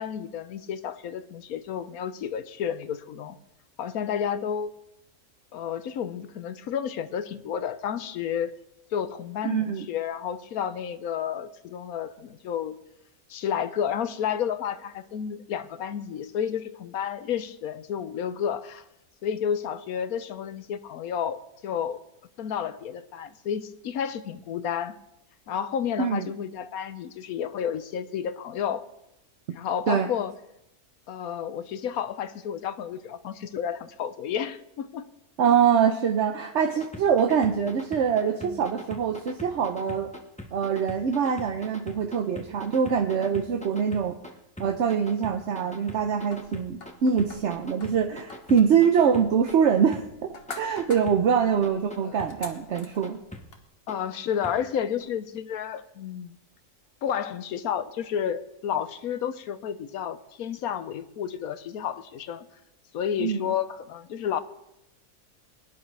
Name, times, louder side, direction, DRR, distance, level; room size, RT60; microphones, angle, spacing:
voice 1, 0.0-3.4 3.8-4.7 5.5-8.6 8.9-12.8 13.3-18.8 19.2-22.0 22.4-25.0 25.5-28.9 29.5-30.3 31.1-35.0 38.4-38.6 52.0-52.1 53.9-56.4 57.0-62.5 62.9-64.4, left 8 dB, 70° left, 12 dB, 1.1 m, -31 dB
voice 2, 9.4-9.9 26.0-26.3 29.9-30.1 35.4-40.1 40.5-44.2 44.6-50.0 50.6-53.2 63.2-63.5, right 7 dB, 55° right, 5 dB, 0.9 m, -24 dB
sound 1, 36.7-44.3 44.6-46.9 47.2-49.5 49.9-50.0 50.5-51.2 51.6-52.3 52.7-53.4 53.9-54.0 54.4-54.5 55.0-55.1, left 1 dB, 5° left, 1.0 m, -41 dB
sound 2, 46.3-53.6, left 3 dB, 40° left, 1.4 m, -46 dB
21.5 x 10.5 x 3.3 m, 0.84 s
omnidirectional pair, 1.6 m